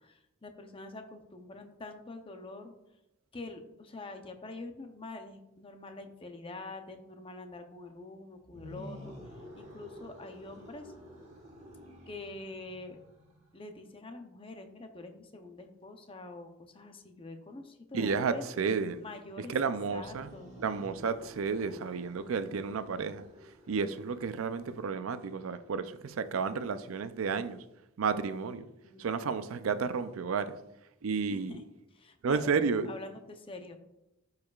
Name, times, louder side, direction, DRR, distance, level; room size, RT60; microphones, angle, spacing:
voice 1, 0.0-2.7 3.3-10.9 12.1-13.0 13.5-18.4 19.0-20.6 28.6-29.4 31.3-31.6 31.9-32.5 32.8-33.8, left 2 dB, 25° left, 0.7 m, -46 dB
sound 1, 8.4-13.6 19.8-25.5, equal, 35° right, 1.7 m, -51 dB
voice 2, 17.9-19.0 19.5-20.3 20.6-23.3 23.7-27.6 28.0-28.7 29.0-30.6 31.0-31.6 32.2-32.9, right 5 dB, 85° right, 0.5 m, -32 dB
11.5 x 4.8 x 2.4 m
head